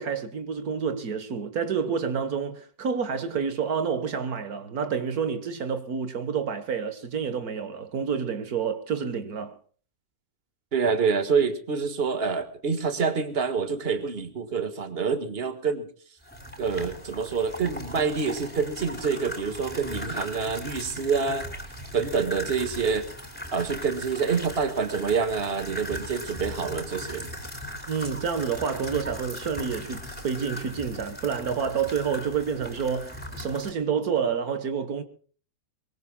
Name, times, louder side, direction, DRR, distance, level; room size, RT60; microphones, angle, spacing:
voice 1, 0.0-9.6 27.9-35.0, right 6 dB, 80° right, 1.9 m, -29 dB
voice 2, 10.7-15.9 16.6-21.5 21.9-23.1 23.5-27.3, right 5 dB, 40° right, 1.9 m, -27 dB
sound 1, 16.2-33.7, left 1 dB, 5° left, 4.2 m, -39 dB
23.0 x 23.0 x 2.3 m
omnidirectional pair, 1.6 m